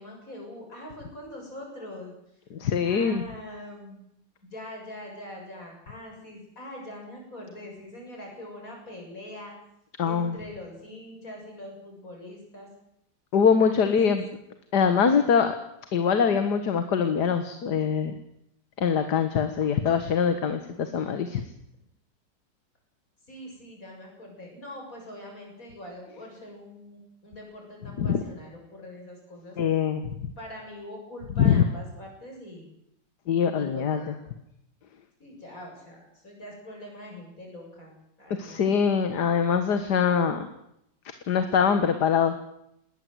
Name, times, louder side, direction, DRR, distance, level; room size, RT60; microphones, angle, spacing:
voice 1, 0.0-2.1 2.8-4.1 4.4-9.6 10.0-12.7 13.6-14.2 23.3-29.6 30.4-32.7 33.6-34.3 35.2-38.8, left 1 dB, 45° left, 0 dB, 7.7 m, -43 dB
voice 2, 2.5-3.2 10.0-10.4 13.3-14.2 14.7-15.6 15.9-18.1 18.8-21.4 28.0-28.2 29.6-30.3 31.4-31.6 33.3-34.0 38.4-40.5 41.3-42.4, left 6 dB, 65° left, 9 dB, 2.0 m, -23 dB
20.5 x 19.0 x 8.0 m, 0.78 s
omnidirectional pair, 2.0 m